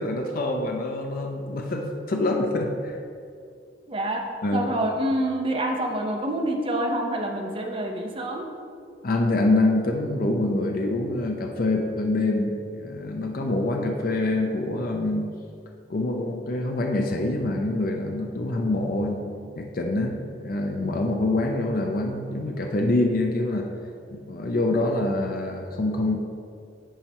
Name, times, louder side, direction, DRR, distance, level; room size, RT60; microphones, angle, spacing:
voice 1, 0.0-3.0 4.4-4.7 9.0-15.3 15.9-19.3 19.6-23.7 24.1-26.2, left 2 dB, 50° left, 2 dB, 0.5 m, -25 dB
voice 2, 3.9-8.5, right 1 dB, 30° right, 2 dB, 0.7 m, -27 dB
10.0 x 4.3 x 2.9 m, 2.4 s
head